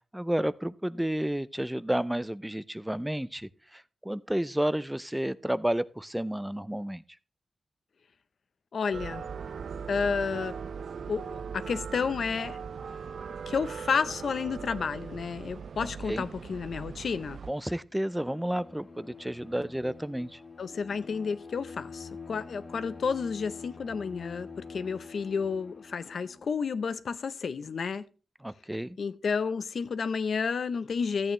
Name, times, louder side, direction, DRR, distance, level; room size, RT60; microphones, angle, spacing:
voice 1, 0.1-7.0 16.1-16.3 17.5-20.4 28.4-29.0, right 1 dB, 5° right, 0.4 m, -31 dB
voice 2, 8.7-9.3 9.9-10.6 11.1-12.6 13.5-17.4 20.6-28.0 29.0-31.3, left 5 dB, 75° left, 0.6 m, -31 dB
sound 1, 8.9-17.5, right 6 dB, 75° right, 0.4 m, -39 dB
Bowed string instrument, 18.0-26.5, left 4 dB, 45° left, 1.6 m, -46 dB
13.5 x 8.8 x 3.0 m
wide cardioid pair, 95°, 0 cm